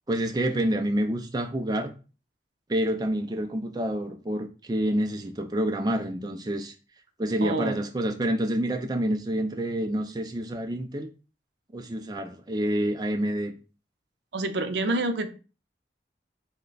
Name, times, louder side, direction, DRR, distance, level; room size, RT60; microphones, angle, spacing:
voice 1, 0.1-1.9 2.7-6.7 7.2-11.1 11.7-13.5, right 1 dB, 20° right, 5 dB, 0.4 m, -28 dB
voice 2, 7.4-7.8 14.3-15.3, right 2 dB, 80° right, 8 dB, 0.5 m, -27 dB
3.2 x 2.2 x 3.8 m, 0.34 s
head